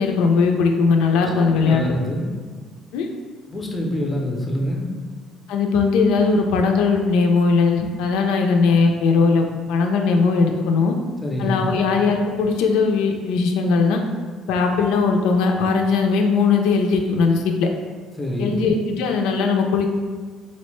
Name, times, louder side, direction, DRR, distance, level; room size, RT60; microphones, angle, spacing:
voice 1, 0.0-1.9 2.9-3.1 5.5-10.9 11.4-14.0 14.5-17.7 18.4-19.9, left 4 dB, 85° left, 3 dB, 0.3 m, -19 dB
voice 2, 1.2-2.3 3.5-5.0 11.2-11.6 18.1-18.6, left 1 dB, 10° left, -1 dB, 0.4 m, -26 dB
4.0 x 2.1 x 3.0 m, 1.5 s
cardioid pair, 165°, 0 cm